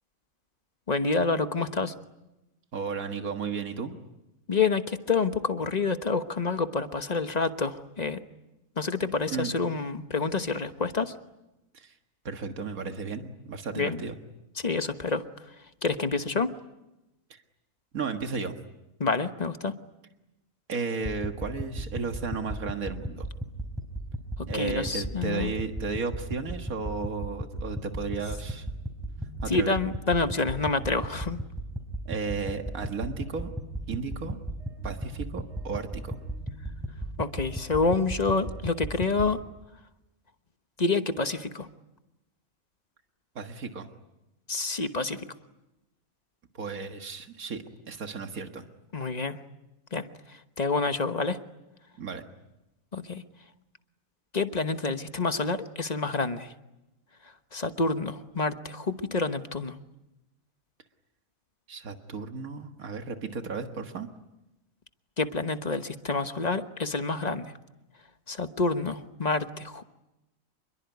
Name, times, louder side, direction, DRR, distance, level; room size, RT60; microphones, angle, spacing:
voice 1, 0.9-1.9 4.5-8.2 8.8-11.2 13.7-14.0 14.6-15.5 15.8-16.5 19.0-19.7 24.4-25.5 29.5-31.4 37.2-39.4 40.8-41.7 44.5-45.3 48.9-49.4 49.9-51.4 52.9-53.2 54.3-56.5 57.2-59.7 65.2-67.6 68.3-69.8, left 4 dB, 30° left, 9 dB, 1.2 m, -28 dB
voice 2, 2.7-4.0 9.3-9.5 11.7-12.0 12.2-14.2 17.3-17.4 17.9-18.6 20.7-23.3 24.5-28.7 29.4-29.8 32.1-33.5 33.9-34.4 34.8-36.2 43.4-43.9 46.5-48.7 52.0-52.2 61.7-64.1, right 4 dB, 85° right, 6 dB, 2.1 m, -34 dB
sound 1, 21.0-39.3, right 1 dB, ahead, 4.3 m, -36 dB
28.0 x 22.0 x 9.4 m, 0.95 s
omnidirectional pair, 1.4 m